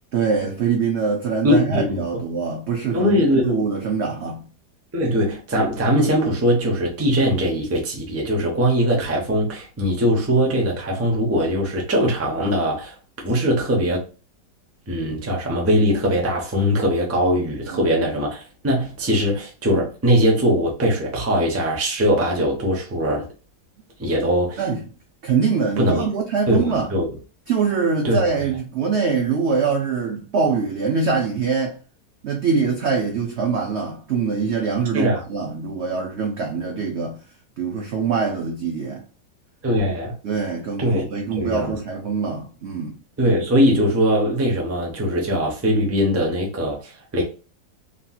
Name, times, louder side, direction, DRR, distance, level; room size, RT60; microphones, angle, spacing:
voice 1, 0.1-4.5 17.7-17.8 24.6-24.8 25.2-26.9 27.5-31.7 32.2-37.2 37.6-39.0 40.2-43.0, right 5 dB, 75° right, 0.6 m, -23 dB
voice 2, 1.4-2.0 2.9-3.6 4.9-12.9 13.2-14.0 14.9-23.3 24.0-24.6 25.8-26.1 26.5-27.1 28.0-28.2 34.9-35.2 39.6-40.1 40.8-41.8 43.2-47.2, equal, 20° right, 0.3 m, -21 dB
3.0 x 2.8 x 2.3 m
omnidirectional pair, 1.8 m